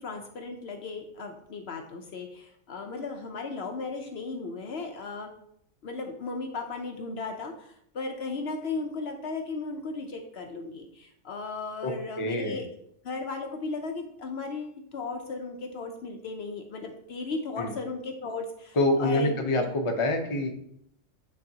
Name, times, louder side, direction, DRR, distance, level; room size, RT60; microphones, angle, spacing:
voice 1, 0.0-5.3 5.8-12.7 13.0-19.6, left 3 dB, 60° left, 3 dB, 0.9 m, -36 dB
voice 2, 11.8-12.6 17.6-17.7 18.7-20.5, left 2 dB, 30° left, 2 dB, 0.7 m, -26 dB
8.6 x 4.0 x 2.8 m, 0.71 s
omnidirectional pair, 1.3 m